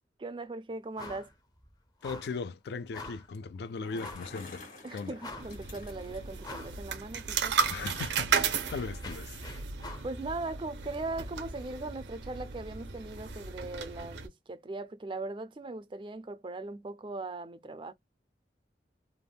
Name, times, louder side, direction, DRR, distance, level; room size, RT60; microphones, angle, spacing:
voice 1, 0.2-1.3 4.8-7.6 10.0-17.9, right 2 dB, 25° right, 0.3 m, -39 dB
sound 1, 1.0-1.3 1.6-1.7 2.0-2.4 2.9-3.3 4.0-4.3 4.8-4.9 5.2-5.7 6.4-6.8 7.1-10.1, left 2 dB, 20° left, 0.6 m, -45 dB
voice 2, 2.0-4.7 4.9-5.1 7.7-9.4, left 4 dB, 70° left, 0.3 m, -38 dB
Bicycle, 3.6-6.4, left 3 dB, 45° left, 1.5 m, -49 dB
sound 2, 5.4-14.3, right 6 dB, 80° right, 0.6 m, -35 dB
3.4 x 2.1 x 2.2 m
head